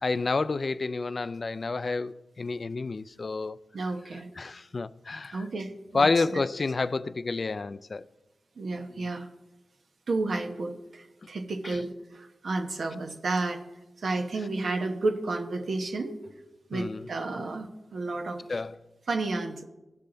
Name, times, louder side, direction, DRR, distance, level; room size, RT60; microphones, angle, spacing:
voice 1, 0.0-3.6 4.4-5.4 5.9-8.0 16.7-17.1 17.4-17.5 18.5-18.8, left 3 dB, 50° left, 0.3 m, -29 dB
voice 2, 3.7-4.3 5.3-6.4 8.6-9.3 10.1-13.6 14.0-16.2 16.7-18.4 19.1-19.6, right 3 dB, 70° right, 1.0 m, -31 dB
15.5 x 5.6 x 3.9 m
cardioid pair, 65°, 0 cm